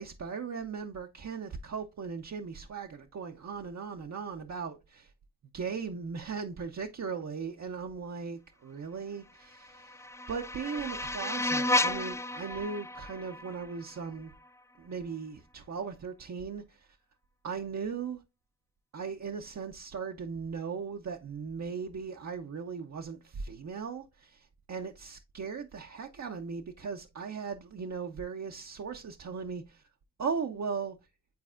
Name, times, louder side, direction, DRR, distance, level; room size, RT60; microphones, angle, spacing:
voice 1, 0.0-5.1 5.5-14.3 14.8-16.9 17.4-18.2 18.9-29.8 30.2-31.0, right 5 dB, 40° right, 0.7 m, -38 dB
sound 1, 9.4-14.5, left 2 dB, 10° left, 0.3 m, -33 dB
9.5 x 4.0 x 2.5 m
supercardioid pair, 40°, 40 cm